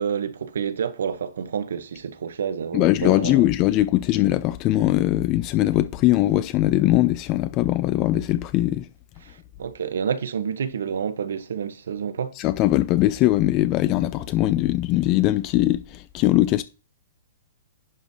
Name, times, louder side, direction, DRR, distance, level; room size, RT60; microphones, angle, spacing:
voice 1, 0.0-3.5 9.2-9.3 9.6-12.3, right 7 dB, 85° right, 0.9 m, -28 dB
voice 2, 2.7-8.9 12.4-16.6, left 15 dB, 30° left, 0.4 m, -21 dB
11.0 x 5.2 x 2.7 m
hypercardioid pair, 160°, 0 cm